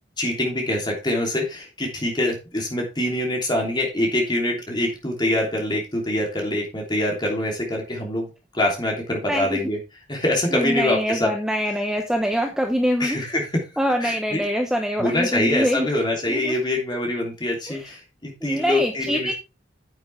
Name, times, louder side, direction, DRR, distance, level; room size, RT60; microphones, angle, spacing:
voice 1, 0.2-9.8 10.1-11.3 13.0-13.6 14.0-14.4 15.0-19.3, left 1 dB, 25° left, 0 dB, 3.1 m, -24 dB
voice 2, 9.3-9.6 10.5-13.2 13.8-15.9 16.3-16.5 17.7-17.9 18.4-19.3, equal, 5° right, 3 dB, 0.9 m, -24 dB
9.9 x 8.1 x 3.4 m, 0.29 s
head